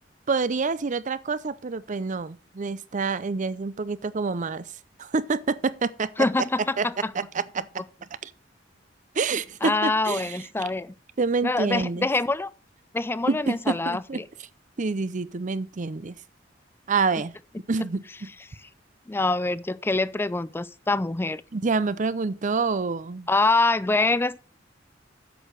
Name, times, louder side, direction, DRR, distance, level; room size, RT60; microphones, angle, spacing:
voice 1, 0.3-4.7 5.0-6.1 6.8-6.9 7.1-7.7 8.2-8.3 9.2-10.4 11.2-12.1 13.3-14.2 14.8-16.2 16.9-17.3 17.7-18.3 21.5-23.3, right 4 dB, 45° right, 0.6 m, -27 dB
voice 2, 6.2-7.1 9.6-10.9 11.4-12.5 12.9-14.3 19.1-21.4 23.3-24.4, left 2 dB, 10° left, 0.4 m, -25 dB
7.8 x 6.5 x 6.4 m
head